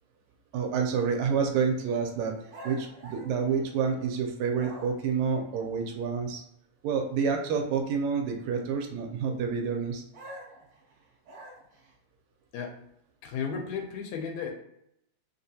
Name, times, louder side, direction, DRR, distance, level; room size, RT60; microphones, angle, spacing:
voice 1, 0.5-2.4 2.6-6.4 6.8-10.0, right 6 dB, 80° right, 3 dB, 1.8 m, -28 dB
sound 1, 2.5-4.1 4.5-5.2 10.1-11.9, equal, 65° right, 1.5 m, -46 dB
voice 2, 13.2-14.5, left 6 dB, 80° left, 3 dB, 1.8 m, -34 dB
4.7 x 2.1 x 2.7 m, 0.78 s
omnidirectional pair, 3.4 m